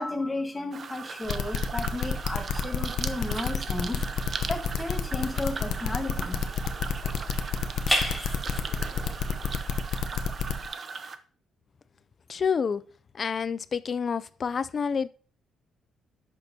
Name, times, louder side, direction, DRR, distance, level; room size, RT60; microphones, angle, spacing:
voice 1, 0.0-4.0 4.5-6.4, left 2 dB, 20° left, 1.4 m, -33 dB
sound 1, 0.7-11.2, right 5 dB, 45° right, 0.8 m, -39 dB
sound 2, 1.3-10.7, left 7 dB, 75° left, 0.8 m, -28 dB
sound 3, 1.9-9.7, equal, 5° right, 3.5 m, -37 dB
voice 2, 12.3-12.8 13.2-15.1, left 6 dB, 45° left, 0.4 m, -28 dB
10.5 x 6.3 x 2.8 m
cardioid pair, 90°, 0 cm